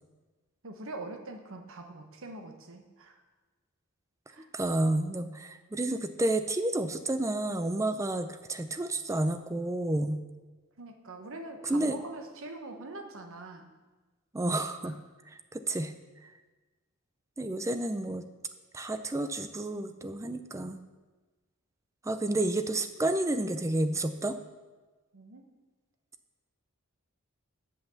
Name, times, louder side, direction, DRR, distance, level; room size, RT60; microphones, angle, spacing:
voice 1, 0.6-3.2 4.3-4.5 10.8-13.7 25.1-25.5, right 2 dB, 60° right, 5 dB, 1.0 m, -43 dB
voice 2, 4.5-10.2 11.6-12.0 14.3-15.0 15.5-15.9 17.4-18.2 18.7-20.8 22.0-24.4, right 1 dB, 15° right, 10 dB, 0.4 m, -30 dB
8.0 x 5.8 x 6.9 m, 1.3 s
head